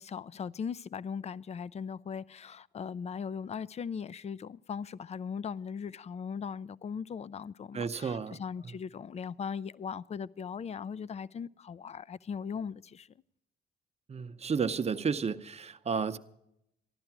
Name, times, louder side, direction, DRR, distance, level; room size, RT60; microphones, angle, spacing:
voice 1, 0.0-13.1, left 6 dB, 35° left, 0.4 m, -39 dB
voice 2, 7.7-8.4 8.6-8.8 14.1-16.2, right 5 dB, 30° right, 0.8 m, -32 dB
15.0 x 11.5 x 5.9 m
cardioid pair, 90°, 20 cm